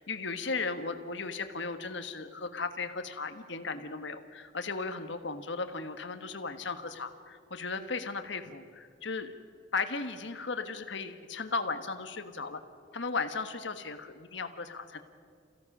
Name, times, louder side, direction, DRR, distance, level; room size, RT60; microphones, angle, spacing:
voice 1, 0.0-9.3 9.7-12.6 12.9-15.0, left 4 dB, 60° left, 8 dB, 1.4 m, -36 dB
28.0 x 16.5 x 6.1 m, 2.2 s
head